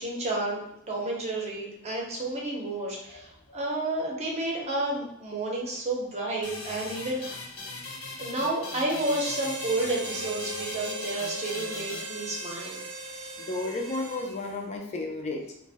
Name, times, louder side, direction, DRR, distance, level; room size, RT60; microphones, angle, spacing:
voice 1, 0.0-7.4 8.2-12.8, right 2 dB, 30° right, -2 dB, 0.7 m, -31 dB
sound 1, 6.4-12.8, left 2 dB, 85° left, 0.8 m, -40 dB
Harmonica, 8.9-14.6, right 2 dB, 85° right, 0.5 m, -38 dB
voice 2, 13.4-15.5, left 2 dB, 30° left, 1 dB, 0.4 m, -33 dB
2.5 x 2.0 x 3.3 m, 0.79 s
head